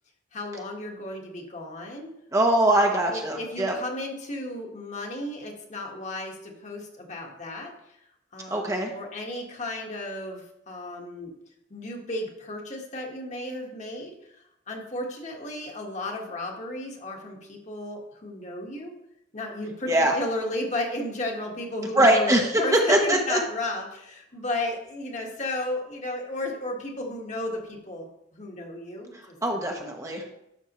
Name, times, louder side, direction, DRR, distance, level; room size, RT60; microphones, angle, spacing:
voice 1, 0.3-2.1 2.7-7.7 8.3-11.3 11.7-18.9 19.3-22.3 22.6-29.6 30.2-30.3, left 1 dB, 40° left, 0 dB, 1.5 m, -34 dB
voice 2, 2.3-3.7 8.5-8.9 19.9-20.2 21.9-22.6 22.9-23.4 29.4-30.3, right 1 dB, 15° right, 2 dB, 0.9 m, -22 dB
11.5 x 6.3 x 3.0 m, 0.81 s
head